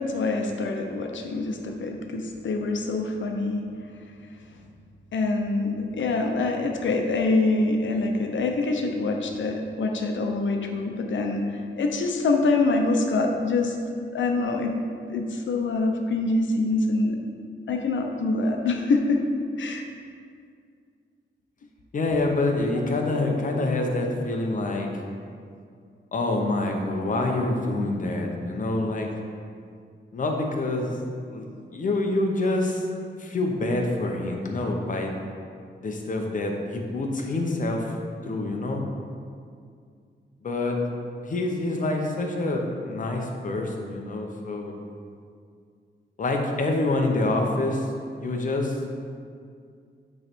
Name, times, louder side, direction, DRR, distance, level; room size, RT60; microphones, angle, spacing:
voice 1, 0.0-3.6 5.1-13.8 14.1-14.8 15.1-17.2 17.7-19.2 19.6-19.8, left 3 dB, 75° left, 3 dB, 0.7 m, -25 dB
voice 2, 21.9-24.9 26.1-29.1 30.1-30.9 31.3-31.5 31.7-32.8 33.2-35.1 35.8-37.9 38.2-38.8 40.4-40.8 41.2-44.7 46.2-47.9 48.2-48.8, left 2 dB, 40° left, 2 dB, 0.8 m, -26 dB
9.3 x 3.3 x 4.4 m, 2.2 s
wide cardioid pair, 175°, 20 cm